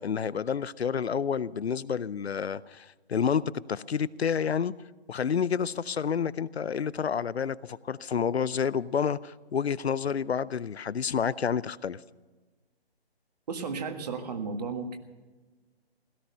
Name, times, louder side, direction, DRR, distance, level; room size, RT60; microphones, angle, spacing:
voice 1, 0.0-3.4 3.7-4.7 5.1-12.0, left 7 dB, 80° left, 0.7 m, -29 dB
voice 2, 13.5-15.0, right 4 dB, 40° right, 1.7 m, -34 dB
17.0 x 13.0 x 5.6 m
figure-of-eight pair, 155°, 32 cm